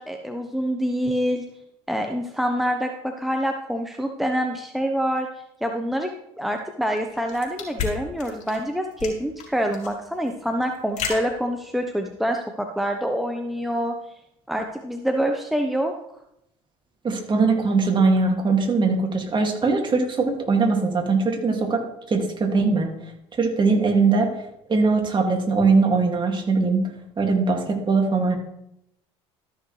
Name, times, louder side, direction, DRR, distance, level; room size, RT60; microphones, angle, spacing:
voice 1, 0.0-1.4 1.9-5.3 5.6-6.1 6.4-13.9 14.5-15.9, equal, ahead, 3 dB, 1.0 m, -26 dB
sound 1, 6.9-12.1, left 6 dB, 55° left, 3.9 m, -34 dB
voice 2, 17.0-21.8 22.1-22.9 23.4-24.3 24.7-26.8 27.2-28.4, right 4 dB, 30° right, 2 dB, 2.3 m, -21 dB
13.5 x 6.5 x 3.3 m, 0.80 s
hypercardioid pair, 75°, 15 cm